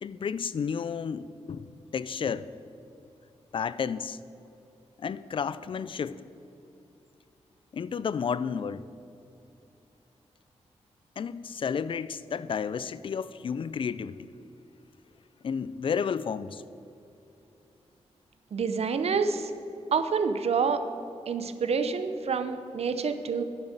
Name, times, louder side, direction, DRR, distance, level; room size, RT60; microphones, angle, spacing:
voice 1, 0.0-2.5 3.5-4.2 5.0-6.2 7.7-8.9 11.2-14.3 15.4-16.6, left 6 dB, 50° left, 16 dB, 0.3 m, -32 dB
voice 2, 18.5-19.5 19.9-20.8 21.3-23.4, right 5 dB, 65° right, 9 dB, 0.7 m, -27 dB
9.9 x 7.2 x 6.7 m, 2.8 s
wide cardioid pair, 115°, 11 cm